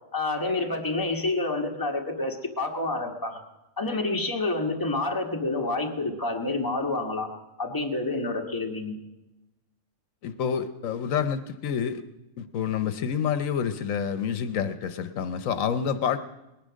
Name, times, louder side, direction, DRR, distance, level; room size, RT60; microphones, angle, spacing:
voice 1, 0.1-3.4 3.8-7.3 7.6-9.0, left 2 dB, 15° left, 1 dB, 1.6 m, -28 dB
voice 2, 10.2-12.0 12.4-16.2, left 7 dB, 80° left, 11 dB, 1.1 m, -28 dB
19.5 x 10.0 x 6.3 m, 1.0 s
omnidirectional pair, 1.4 m